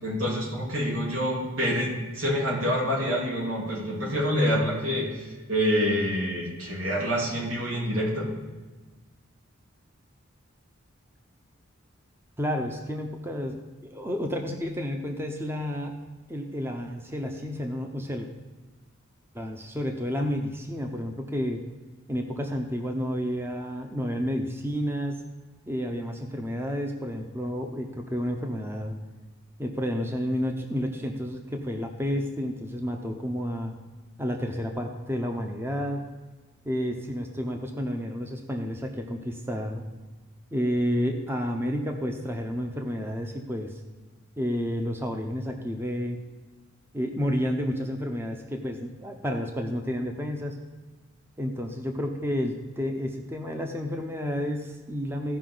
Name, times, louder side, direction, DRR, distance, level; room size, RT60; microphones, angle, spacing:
voice 1, 0.0-5.1 5.5-8.3, equal, 90° right, -4 dB, 3.3 m, -27 dB
voice 2, 12.4-16.0 16.3-18.3 19.3-21.6 22.1-25.2 25.7-29.0 29.6-33.7 34.2-36.0 36.6-39.8 40.5-43.7 44.4-46.2 46.9-50.6 51.4-55.4, equal, 10° right, 3 dB, 0.7 m, -30 dB
15.5 x 5.4 x 3.9 m, 1.3 s
head